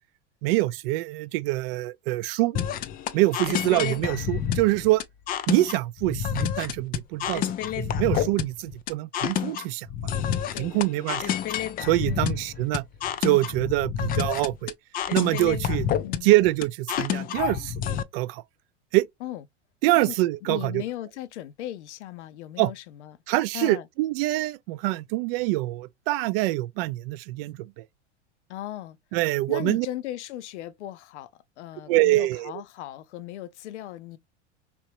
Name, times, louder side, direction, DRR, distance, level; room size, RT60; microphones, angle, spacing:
voice 1, 0.4-2.6 3.1-5.0 5.5-7.4 7.8-9.9 10.6-11.3 11.8-12.8 13.2-14.7 15.1-15.9 16.2-17.8 18.1-18.4 18.9-19.1 19.8-20.8 22.6-22.7 23.3-27.8 29.1-29.9 31.9-32.5, right 18 dB, 55° right, 0.5 m, -25 dB
sound 1, 2.5-18.0, left 9 dB, 25° left, 0.4 m, -29 dB
voice 2, 10.5-11.3 12.0-12.5 16.0-16.3 19.2-19.4 19.9-20.2 20.4-23.2 23.5-23.9 28.5-29.0 29.5-34.2, left 13 dB, 70° left, 0.6 m, -37 dB
3.4 x 2.8 x 2.9 m
hypercardioid pair, 90°, 36 cm